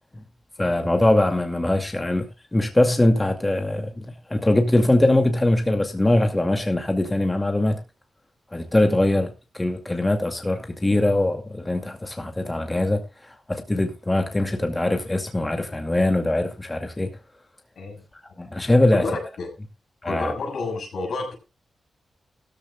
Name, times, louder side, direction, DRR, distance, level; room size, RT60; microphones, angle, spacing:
voice 1, 0.6-7.8 8.5-17.1 18.2-19.0 20.0-20.3, left 1 dB, 20° left, 2.3 m, -22 dB
voice 2, 18.9-19.5 20.0-21.3, left 3 dB, 80° left, 6.3 m, -30 dB
16.0 x 13.5 x 2.3 m
cardioid pair, 60°, 0 cm